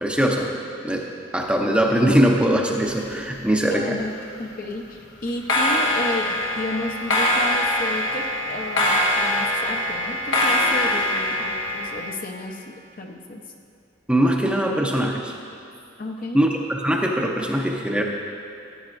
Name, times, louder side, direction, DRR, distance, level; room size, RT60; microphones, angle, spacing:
voice 1, 0.0-0.5 0.8-1.1 1.3-4.0 14.1-15.3 16.3-18.0, right 1 dB, 5° right, 0 dB, 0.6 m, -21 dB
sound 1, 2.8-3.7 4.0-4.4 5.3-12.1, left 1 dB, 90° left, 1.5 m, -23 dB
voice 2, 3.7-4.1 4.4-13.4 16.0-16.4, left 1 dB, 45° left, 2 dB, 0.8 m, -32 dB
14.0 x 9.3 x 2.6 m, 2.6 s
head